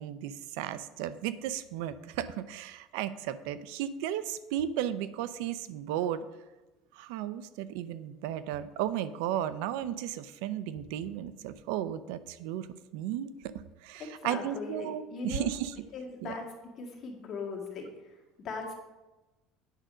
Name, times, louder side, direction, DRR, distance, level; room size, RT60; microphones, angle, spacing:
voice 1, 0.0-6.2 6.9-12.7 12.9-13.3 13.8-15.7 16.2-16.3, right 11 dB, 80° right, 14 dB, 0.5 m, -34 dB
voice 2, 14.0-15.5 15.9-16.4 16.8-18.7, left 4 dB, 35° left, -1 dB, 2.0 m, -39 dB
9.1 x 4.9 x 6.3 m, 1.1 s
cardioid pair, 155°, 0 cm